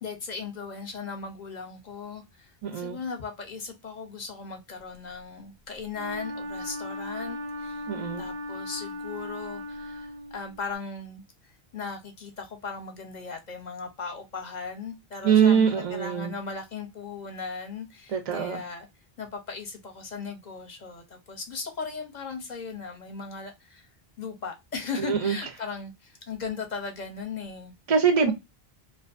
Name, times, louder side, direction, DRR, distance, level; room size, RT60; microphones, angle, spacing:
voice 1, 0.0-7.8 8.2-18.9 19.2-23.9 24.2-27.7 28.2-28.3, left 5 dB, 50° left, 0.6 m, -37 dB
voice 2, 2.6-3.0 7.9-8.3 15.2-16.3 18.1-18.6 25.0-25.3 27.9-28.3, right 7 dB, 55° right, 0.4 m, -23 dB
Wind instrument woodwind instrument, 5.9-10.7, left 1 dB, 85° right, 0.8 m, -37 dB
2.5 x 2.3 x 2.3 m
omnidirectional pair, 1.1 m